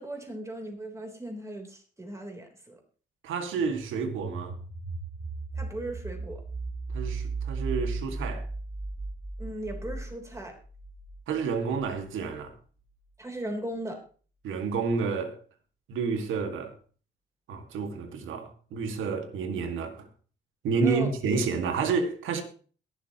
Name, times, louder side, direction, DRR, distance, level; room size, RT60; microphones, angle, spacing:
voice 1, 0.0-2.8 5.6-6.4 9.4-10.5 13.2-14.0 20.8-21.1, right 1 dB, 15° right, 3.6 m, -37 dB
voice 2, 3.2-4.6 6.9-8.5 11.3-12.5 14.4-15.4 15.9-16.7 17.5-20.1 20.6-22.4, right 5 dB, 80° right, 2.0 m, -30 dB
sound 1, 3.5-12.2, right 3 dB, 35° right, 2.6 m, -36 dB
21.5 x 7.3 x 3.0 m
cardioid pair, 90°, 20 cm